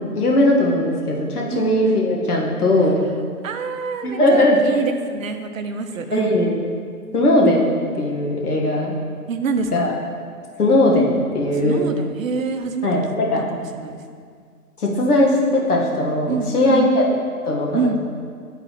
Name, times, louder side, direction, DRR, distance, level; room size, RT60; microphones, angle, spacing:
voice 1, 0.1-3.0 4.0-4.6 6.1-6.5 7.1-7.7 7.9-8.9 9.7-9.9 10.6-11.9 12.8-13.4 14.8-17.1 17.5-17.9, left 1 dB, 75° left, -2 dB, 1.4 m, -18 dB
voice 2, 3.4-6.4 9.3-9.9 11.5-12.9 13.5-14.0 16.3-16.9 17.7-18.0, right 4 dB, 60° right, 7 dB, 0.6 m, -26 dB
9.7 x 4.0 x 2.9 m, 2.1 s
figure-of-eight pair, 140°, 46 cm